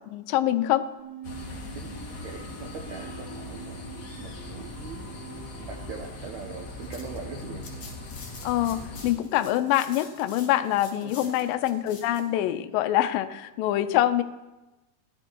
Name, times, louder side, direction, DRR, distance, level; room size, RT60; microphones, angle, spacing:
voice 1, 0.1-0.9 8.4-14.2, left 13 dB, 80° left, 10 dB, 2.1 m, -25 dB
sound 1, 1.0-8.0, right 4 dB, 40° right, 2.2 m, -45 dB
sound 2, 1.2-9.1, left 2 dB, 65° left, 1.0 m, -40 dB
voice 2, 2.2-3.8 4.2-5.1 5.6-7.6 11.0-11.4, right 5 dB, 80° right, 2 dB, 1.6 m, -41 dB
sound 3, 6.8-12.2, left 4 dB, 40° left, 3.0 m, -47 dB
16.0 x 11.5 x 4.5 m, 1.0 s
omnidirectional pair, 4.5 m